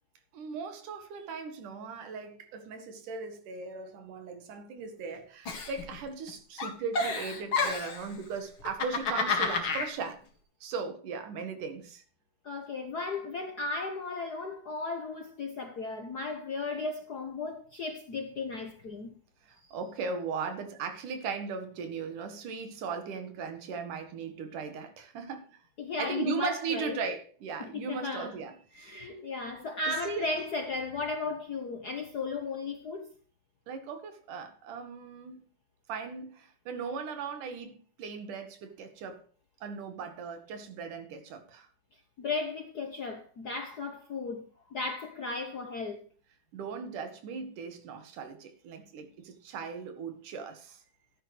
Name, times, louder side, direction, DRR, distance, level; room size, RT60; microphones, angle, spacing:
voice 1, 0.3-10.3 10.6-12.0 16.7-16.9 19.4-25.6 26.0-29.1 29.9-30.3 33.7-35.5 35.9-39.2 39.6-41.7 46.5-50.8, right 5 dB, 85° right, 3.2 m, -38 dB
Giggle, 5.5-6.3 6.6-8.1 8.6-9.9, left 4 dB, 45° left, 2.5 m, -30 dB
voice 2, 12.4-19.1 25.8-27.0 27.6-28.3 28.7-33.1 42.2-44.4 44.7-46.0, left 3 dB, 75° left, 0.9 m, -35 dB
13.5 x 10.0 x 3.3 m
omnidirectional pair, 3.5 m